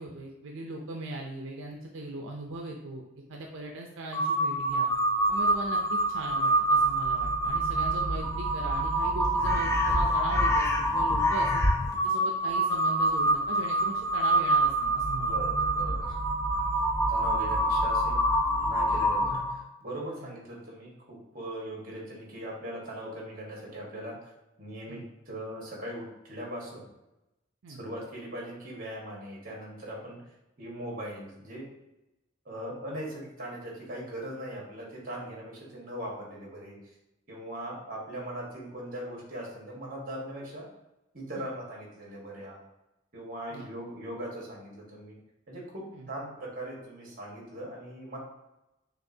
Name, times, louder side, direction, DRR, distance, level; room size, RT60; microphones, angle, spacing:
voice 1, 0.0-4.9 5.3-11.6 12.0-15.4 18.9-19.0 20.2-20.3 24.9-25.0 27.6-27.8 41.4-41.5 43.5-43.7 45.9-46.1, right 2 dB, 85° right, 1 dB, 0.5 m, -39 dB
Crow, 4.1-19.6, right 1 dB, 15° left, 0.4 m, -26 dB
voice 2, 15.2-16.2 17.1-18.2 18.5-24.3 24.6-26.9 27.7-30.2 30.6-31.7 32.4-36.8 37.3-40.6 41.1-42.6 43.1-45.2 45.5-48.2, right 1 dB, 45° right, -2 dB, 1.4 m, -40 dB
6.2 x 2.5 x 2.7 m, 0.95 s
head